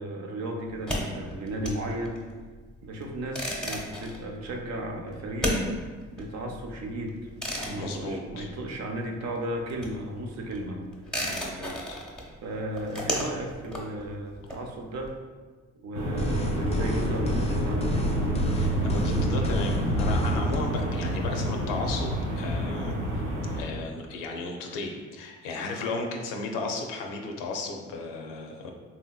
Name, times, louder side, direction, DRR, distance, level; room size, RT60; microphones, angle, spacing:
voice 1, 0.0-2.2 2.8-5.6 6.1-7.3 7.6-10.8 12.4-15.1 15.8-18.1, right 1 dB, 55° right, 2 dB, 0.6 m, -35 dB
sound 1, 0.7-9.0 9.3-15.1, equal, ahead, 0.8 m, -34 dB
voice 2, 7.8-8.5 11.3-12.0 18.5-22.9 23.5-28.7, left 3 dB, 85° left, 2 dB, 0.5 m, -35 dB
sound 2, 15.9-23.6, right 1 dB, 85° right, 0.8 m, -28 dB
sound 3, 16.2-20.6, left 2 dB, 20° left, 0.3 m, -32 dB
3.4 x 2.7 x 2.3 m, 1.4 s
supercardioid pair, 60°, 33 cm